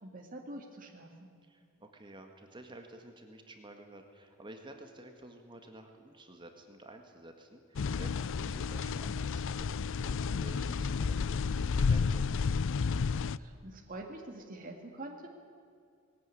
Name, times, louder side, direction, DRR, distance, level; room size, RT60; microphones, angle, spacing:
voice 1, 0.0-1.3 13.1-15.3, right 1 dB, 40° right, 1 dB, 2.3 m, -46 dB
voice 2, 1.4-12.2, right 1 dB, 20° right, 4 dB, 1.8 m, -52 dB
sound 1, 7.8-13.4, left 5 dB, 60° left, 0.5 m, -31 dB
19.5 x 17.5 x 9.9 m, 2.3 s
head